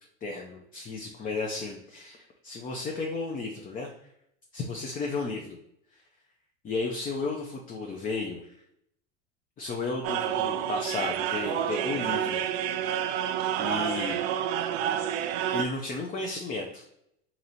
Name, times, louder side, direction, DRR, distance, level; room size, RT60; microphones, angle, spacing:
voice 1, 0.2-3.9 4.5-5.6 6.6-8.5 9.6-12.4 13.6-14.2 15.5-16.9, left 3 dB, 25° left, 1 dB, 0.5 m, -33 dB
sound 1, 10.0-15.6, right 10 dB, 60° right, 0.5 m, -29 dB
3.0 x 2.8 x 3.9 m, 0.76 s
hypercardioid pair, 95°, 35 cm